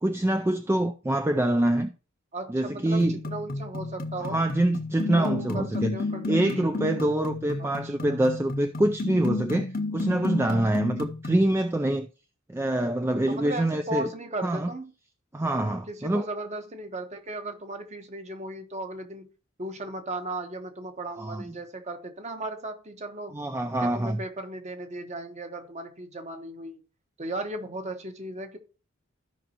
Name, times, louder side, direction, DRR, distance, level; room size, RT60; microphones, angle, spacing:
voice 1, 0.0-1.9 2.5-3.2 4.2-5.9 6.3-12.1 12.5-14.1 14.4-14.7 15.3-16.2 21.2-21.5 23.3-24.2, right 1 dB, 10° right, 0.3 m, -25 dB
voice 2, 2.3-4.4 5.0-6.8 7.6-8.2 13.3-14.9 15.6-19.3 19.6-23.4 23.8-26.8 27.2-28.6, right 2 dB, 35° right, 1.1 m, -36 dB
sound 1, 3.0-11.5, left 3 dB, 45° left, 0.7 m, -32 dB
14.5 x 5.3 x 2.9 m
head